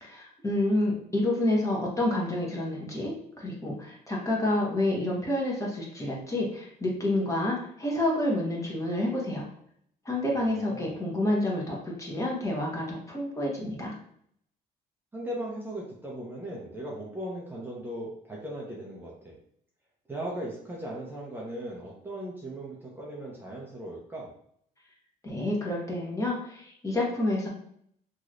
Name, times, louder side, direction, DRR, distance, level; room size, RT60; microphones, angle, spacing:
voice 1, 0.0-9.5 10.0-13.9 25.2-27.5, left 1 dB, 20° left, -2 dB, 1.1 m, -29 dB
voice 2, 10.3-10.9 15.1-19.3 20.1-24.3, right 1 dB, 10° right, -4 dB, 0.7 m, -38 dB
3.0 x 3.0 x 2.5 m, 0.67 s
cardioid pair, 110°, 17 cm